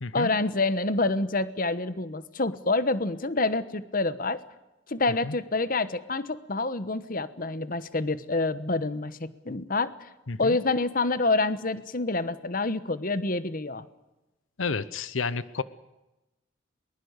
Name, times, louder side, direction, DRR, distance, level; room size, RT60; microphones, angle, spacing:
voice 1, 0.1-4.4 4.9-10.1 10.4-13.9, left 3 dB, 45° left, 14 dB, 1.1 m, -27 dB
voice 2, 14.6-15.6, left 4 dB, 80° left, 16 dB, 0.9 m, -30 dB
22.5 x 21.0 x 8.1 m, 0.98 s
head